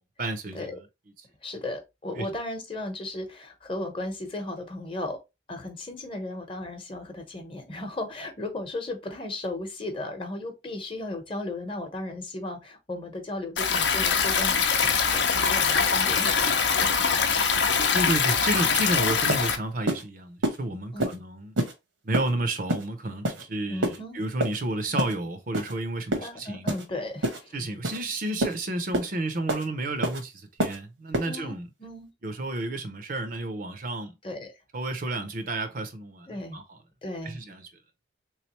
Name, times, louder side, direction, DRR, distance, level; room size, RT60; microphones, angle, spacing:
voice 1, 0.2-0.8 2.2-2.3 17.9-21.5 22.0-26.7 27.5-31.7 32.2-34.1 34.7-36.6 37.2-37.7, right 2 dB, 45° right, 0.6 m, -31 dB
voice 2, 1.4-5.2 5.5-17.0 19.0-19.1 20.9-21.2 23.7-24.2 26.2-27.7 31.3-32.1 34.2-34.5 36.3-36.6 37.0-37.4, left 1 dB, 25° left, 0.9 m, -35 dB
Stream, 13.6-19.6, left 6 dB, 65° left, 0.7 m, -23 dB
sound 1, 19.3-19.5 19.9-20.0 20.4-20.6 21.0-21.2 21.6-21.7 22.1-22.3 22.7-22.9 23.2-23.4 23.8-24.0 24.4-24.6 25.0-25.1 25.5-25.7 26.1-26.3 26.7-26.9 27.2-27.4 27.8-28.0 28.4-28.6 28.9-29.1 29.5-29.7 30.0-30.2 30.6-30.8 31.1-31.3, right 1 dB, 85° right, 1.1 m, -27 dB
3.6 x 3.1 x 3.0 m
head